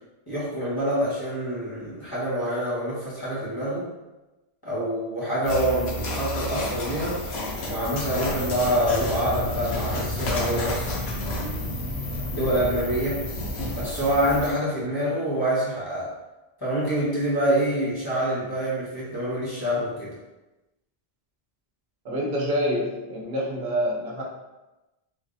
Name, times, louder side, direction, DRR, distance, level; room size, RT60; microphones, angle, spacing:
voice 1, 0.3-3.9 4.6-7.2 7.7-10.9 11.2-11.8 12.3-13.3 13.7-16.1 16.6-20.1, equal, 20° left, -9 dB, 1.2 m, -26 dB
sound 1, 5.4-14.5, left 1 dB, 85° left, 1.0 m, -30 dB
voice 2, 22.0-24.2, equal, 70° right, -3 dB, 1.0 m, -27 dB
3.2 x 3.2 x 2.6 m, 1.0 s
omnidirectional pair, 1.0 m